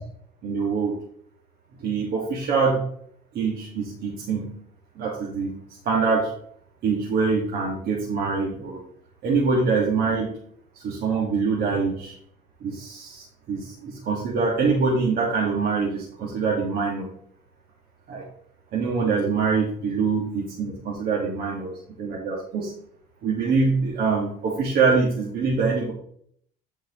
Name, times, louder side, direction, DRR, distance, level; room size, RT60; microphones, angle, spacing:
voice 1, 0.4-1.0 1.8-2.8 3.3-4.5 5.0-5.6 5.8-6.3 6.8-8.8 9.2-10.4 10.8-12.1 12.6-17.1 18.1-18.2 18.7-22.7 23.2-25.9, right 4 dB, 70° right, -2 dB, 1.7 m, -24 dB
12.5 x 4.6 x 3.0 m, 0.65 s
cardioid pair, 110°, 17 cm